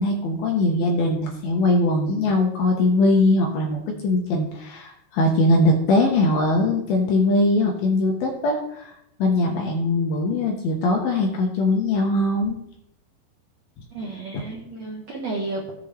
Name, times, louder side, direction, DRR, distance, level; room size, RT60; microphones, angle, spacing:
voice 1, 0.0-8.9 9.2-12.6 14.3-14.4, left 2 dB, 70° left, 0 dB, 2.6 m, -21 dB
voice 2, 13.9-15.7, right 2 dB, 70° right, -2 dB, 1.6 m, -32 dB
17.0 x 6.9 x 3.3 m, 0.79 s
omnidirectional pair, 4.9 m